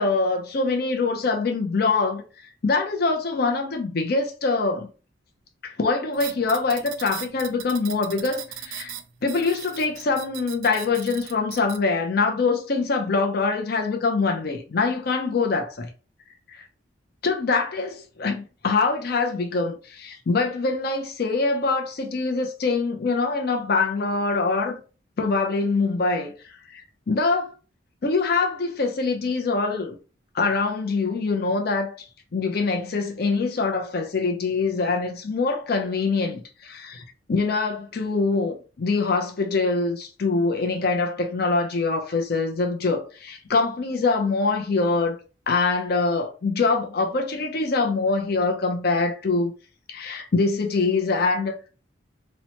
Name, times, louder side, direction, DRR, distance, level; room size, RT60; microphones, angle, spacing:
voice 1, 0.0-2.2 2.6-4.9 5.6-8.9 9.2-15.9 16.5-16.6 17.2-24.8 25.2-26.3 26.7-26.8 27.1-27.5 28.0-30.0 30.3-45.2 45.5-49.5 49.9-51.5, left 3 dB, 50° left, 0.5 m, -24 dB
sound 1, 6.1-11.8, right 11 dB, 85° right, 0.3 m, -39 dB
2.8 x 2.1 x 2.8 m
head